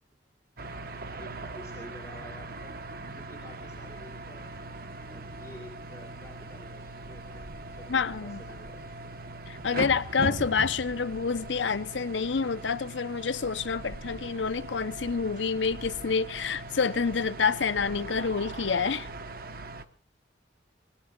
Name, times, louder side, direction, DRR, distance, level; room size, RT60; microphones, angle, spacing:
sound 1, 0.6-19.8, right 2 dB, 55° right, 1.1 m, -40 dB
voice 1, 1.2-2.7 3.2-4.6 5.1-8.9, equal, 15° left, 3.3 m, -50 dB
voice 2, 7.9-8.4 9.5-19.1, left 5 dB, 80° left, 0.8 m, -28 dB
26.0 x 20.0 x 2.4 m
head